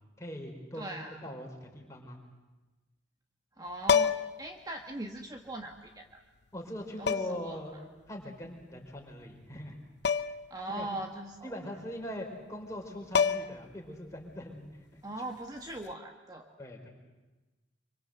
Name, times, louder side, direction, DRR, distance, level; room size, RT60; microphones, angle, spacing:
voice 1, 0.2-2.2 6.5-7.7 8.1-9.8 10.7-10.9 11.4-15.0 16.6-16.9, left 1 dB, 15° left, 1 dB, 4.9 m, -41 dB
voice 2, 0.7-1.2 3.6-6.2 7.0-7.6 10.5-11.6 15.0-16.5, right 1 dB, 20° right, 3 dB, 1.3 m, -40 dB
sound 1, 3.8-4.4 5.8-5.9 7.1-7.5 10.0-10.5 10.8-10.9 12.7-12.8 13.1-13.7 15.7-15.9, left 6 dB, 60° left, 0.8 m, -27 dB
26.0 x 24.5 x 8.0 m, 1.2 s
head